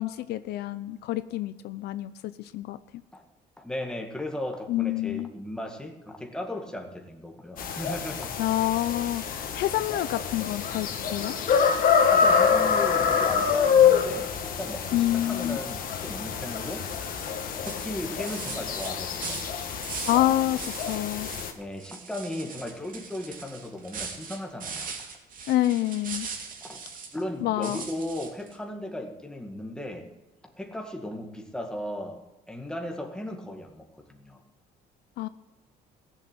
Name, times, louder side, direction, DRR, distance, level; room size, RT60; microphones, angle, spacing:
voice 1, 0.0-3.0 4.7-5.3 8.4-11.4 14.9-15.6 20.1-21.3 25.5-26.3 27.4-27.8 35.2-35.3, left 14 dB, 75° left, 13 dB, 0.6 m, -27 dB
voice 2, 3.6-8.3 12.1-16.9 17.6-19.4 21.6-24.9 26.6-26.8 27.1-30.1 30.4-32.2 32.5-34.4, left 1 dB, 5° left, 2 dB, 2.0 m, -36 dB
sound 1, 7.6-21.5, left 6 dB, 55° left, 1.7 m, -26 dB
sound 2, 17.2-17.4 17.7-20.3 20.6-21.5 21.8-27.2 27.6-28.5, right 5 dB, 55° right, 2.5 m, -40 dB
15.5 x 7.4 x 8.2 m, 1.1 s
cardioid pair, 110°, 17 cm